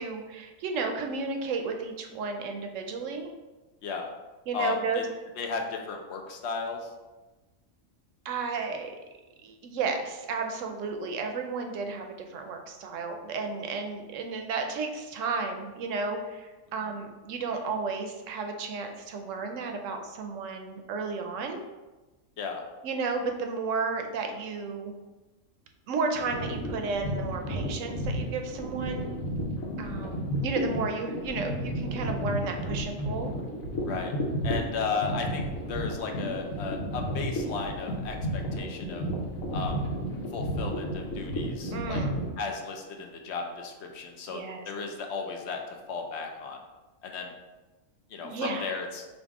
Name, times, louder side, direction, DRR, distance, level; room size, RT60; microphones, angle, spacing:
voice 1, 0.0-3.3 4.5-5.0 8.2-9.0 9.4-21.6 22.8-24.9 25.9-29.1 29.8-33.3 41.7-42.2 44.3-44.6 48.2-48.7, right 4 dB, 75° right, 4 dB, 0.9 m, -33 dB
voice 2, 4.5-5.0 5.4-6.9 22.4-22.6 29.8-30.1 33.9-34.1 34.4-39.0 39.5-39.9 40.3-42.0 42.4-46.6 47.0-47.3 48.1-49.0, left 5 dB, 65° left, 3 dB, 0.8 m, -35 dB
sound 1, 26.2-42.3, equal, 90° left, 1.2 m, -32 dB
5.3 x 2.4 x 3.5 m, 1.2 s
omnidirectional pair, 1.4 m